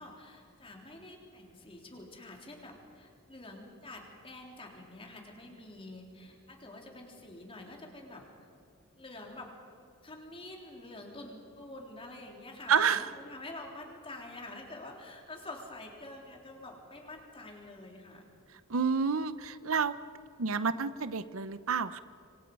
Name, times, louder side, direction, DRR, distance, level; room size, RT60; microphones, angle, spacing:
voice 1, 0.0-8.3 9.0-9.5 10.0-18.3, left 2 dB, 25° left, 1 dB, 3.5 m, -47 dB
voice 2, 12.7-13.0 18.7-20.0 20.4-22.0, right 6 dB, 70° right, 14 dB, 0.7 m, -29 dB
26.5 x 25.0 x 5.4 m, 2.4 s
head